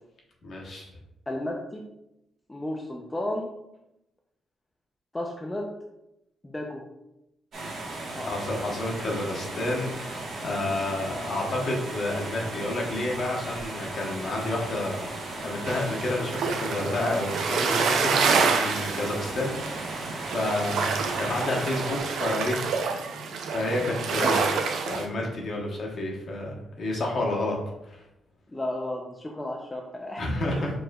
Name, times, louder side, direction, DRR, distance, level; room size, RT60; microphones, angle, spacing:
voice 1, 0.4-0.8 8.3-15.0 15.4-19.9 20.3-22.6 23.5-24.4 24.9-27.6 27.8-28.0 30.2-30.7, left 2 dB, 45° left, -1 dB, 0.9 m, -30 dB
voice 2, 1.3-1.8 2.5-3.5 5.1-5.7 6.4-6.8 8.1-8.3 11.1-11.4 24.2-24.4 28.5-30.4, left 1 dB, 10° left, 0 dB, 0.4 m, -33 dB
sound 1, 7.5-22.0, right 2 dB, 60° right, 1.1 m, -36 dB
sound 2, 15.7-25.1, right 5 dB, 80° right, 0.4 m, -28 dB
4.8 x 3.0 x 2.3 m, 0.86 s
cardioid pair, 160°, 0 cm